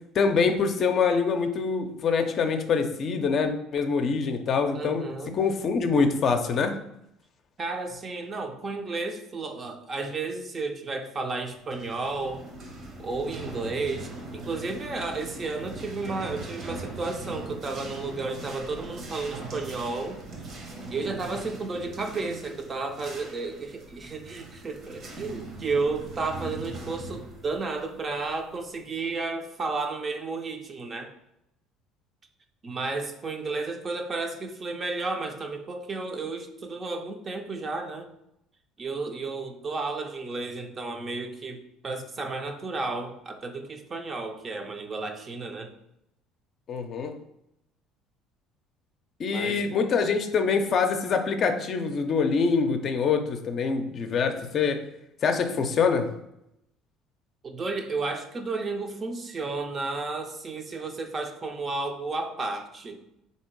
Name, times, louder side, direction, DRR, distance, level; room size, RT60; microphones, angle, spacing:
voice 1, 0.1-5.0 5.3-6.8 46.7-47.1 49.2-54.8 55.2-56.1, left 5 dB, 45° left, 6 dB, 0.5 m, -25 dB
voice 2, 4.7-5.4 7.6-12.5 13.0-20.2 20.9-31.1 32.6-38.1 38.8-45.7 49.2-49.7 57.4-63.0, right 3 dB, 30° right, 5 dB, 0.6 m, -32 dB
sound 1, 11.5-28.9, right 2 dB, 45° right, 1.0 m, -41 dB
3.5 x 2.8 x 4.5 m, 0.82 s
cardioid pair, 105°, 0 cm